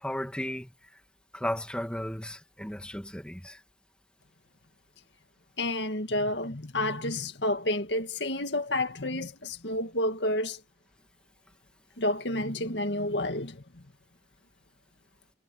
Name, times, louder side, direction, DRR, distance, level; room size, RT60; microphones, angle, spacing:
voice 1, 0.0-0.7 1.3-3.6, left 1 dB, 5° left, 2.4 m, -34 dB
voice 2, 5.6-10.6 12.0-13.8, left 1 dB, 85° left, 2.0 m, -30 dB
head